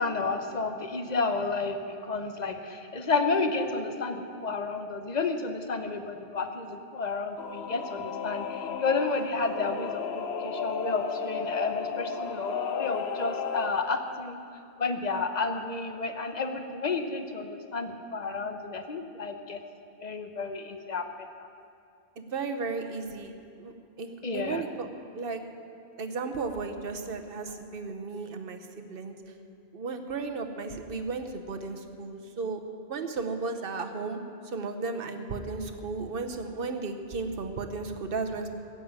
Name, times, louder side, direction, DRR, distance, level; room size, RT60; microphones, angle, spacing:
voice 1, 0.0-1.8 2.1-14.4 14.8-19.6 20.0-21.0 21.4-21.5 24.2-24.6, left 4 dB, 45° left, 6 dB, 1.0 m, -31 dB
voice 2, 3.3-3.9 22.2-23.3 23.6-24.9 25.1-25.4 26.0-29.1 29.7-32.6 32.9-38.5, right 4 dB, 60° right, 6 dB, 1.2 m, -34 dB
Singing / Musical instrument, 7.4-13.7, left 6 dB, 75° left, 1.0 m, -34 dB
15.0 x 7.9 x 8.9 m, 2.5 s
omnidirectional pair, 1.1 m